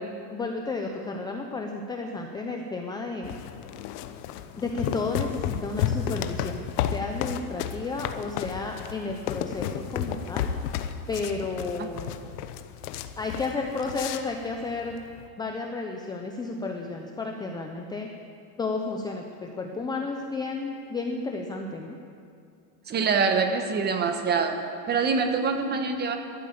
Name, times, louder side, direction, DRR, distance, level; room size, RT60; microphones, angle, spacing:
voice 1, 0.3-3.4 4.6-6.6 6.9-10.5 11.1-12.1 13.2-15.0 15.4-18.1 18.6-22.0, left 3 dB, 10° left, 2 dB, 0.6 m, -32 dB
sound 1, 3.2-15.3, left 9 dB, 70° left, 1.0 m, -33 dB
voice 2, 22.9-24.5 24.9-26.2, right 5 dB, 20° right, 6 dB, 1.3 m, -25 dB
13.0 x 12.5 x 8.5 m, 2.4 s
supercardioid pair, 150°, 48 cm